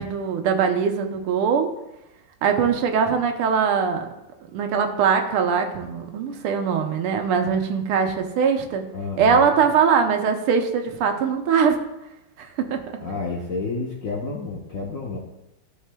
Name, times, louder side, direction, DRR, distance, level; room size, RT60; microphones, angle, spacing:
voice 1, 0.0-1.7 2.4-4.1 4.5-8.8 9.2-11.8 12.4-12.8, right 6 dB, 80° right, 5 dB, 1.7 m, -21 dB
voice 2, 8.9-9.4 13.0-15.2, left 3 dB, 60° left, -2 dB, 0.9 m, -30 dB
13.5 x 5.4 x 2.2 m, 0.93 s
omnidirectional pair, 2.4 m